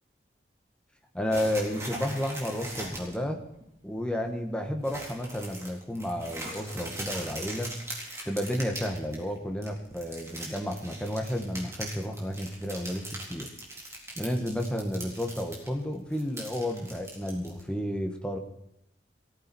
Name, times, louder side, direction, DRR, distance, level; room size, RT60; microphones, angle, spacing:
voice 1, 1.1-3.4 3.8-7.8 8.3-13.0 13.3-13.5 14.2-18.4, equal, 5° left, 3 dB, 1.7 m, -32 dB
sound 1, 1.3-3.1 3.5-3.6 4.0-4.3 4.8-9.4 9.6-15.7 15.9-17.6, right 1 dB, 15° right, 4.0 m, -40 dB
19.5 x 14.5 x 4.6 m, 0.78 s
head